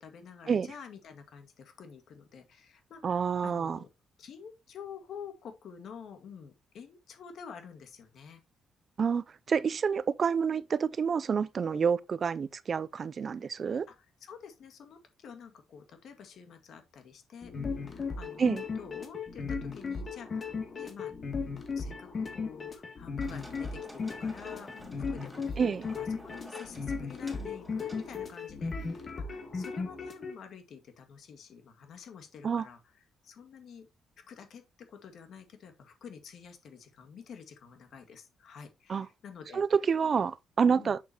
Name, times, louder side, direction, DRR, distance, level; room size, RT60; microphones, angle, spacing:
voice 1, 0.0-3.9 4.2-8.4 13.9-21.1 21.8-33.9 34.3-39.6 40.7-40.9, left 6 dB, 65° left, 2.0 m, -49 dB
voice 2, 3.0-3.8 9.0-13.9 18.4-18.6 25.6-25.9 32.4-32.6 38.9-39.1 39.5-41.0, right 6 dB, 45° right, 0.4 m, -28 dB
sound 1, 17.4-30.3, left 5 dB, 40° left, 2.4 m, -36 dB
sound 2, 23.2-28.9, right 1 dB, 5° right, 4.2 m, -51 dB
8.4 x 6.6 x 2.9 m
cardioid pair, 90°, 0 cm